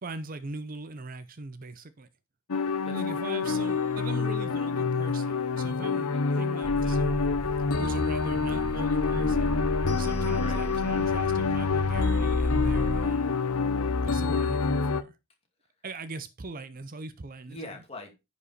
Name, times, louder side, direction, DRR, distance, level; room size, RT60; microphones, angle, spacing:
voice 1, 0.0-2.1 2.9-7.4 7.8-9.6 10.0-13.4 14.0-15.2 15.8-17.6, right 3 dB, 40° right, 0.6 m, -40 dB
sound 1, 2.5-15.0, left 4 dB, 90° left, 0.9 m, -27 dB
voice 2, 2.8-3.6 6.1-7.0 7.4-7.7 10.3-10.6 17.5-18.1, left 1 dB, 30° left, 2.4 m, -45 dB
sound 2, 6.6-13.0, right 1 dB, 60° right, 1.2 m, -35 dB
10.0 x 4.9 x 4.3 m
head